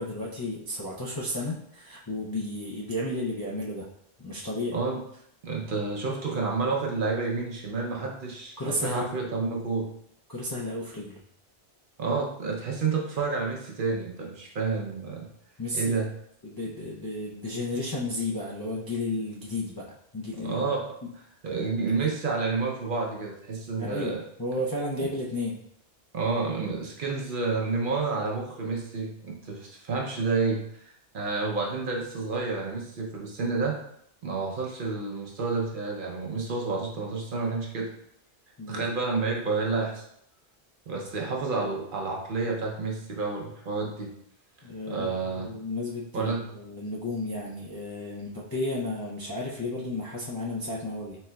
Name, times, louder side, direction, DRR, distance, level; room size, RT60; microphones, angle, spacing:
voice 1, 0.0-3.9 4.2-4.8 8.6-9.0 10.3-11.2 15.6-16.0 16.4-19.9 20.1-20.7 21.0-21.1 23.8-25.6 38.6-38.9 41.0-41.1 44.6-51.2, left 2 dB, 30° left, -6 dB, 0.4 m, -33 dB
voice 2, 5.4-9.9 12.0-15.3 15.7-16.1 20.4-20.8 21.4-24.2 26.1-33.8 34.2-37.9 38.7-40.0 40.9-44.1 44.9-45.5 46.1-46.5, right 4 dB, 55° right, -1 dB, 0.8 m, -29 dB
4.3 x 3.6 x 2.2 m, 0.70 s
omnidirectional pair, 1.1 m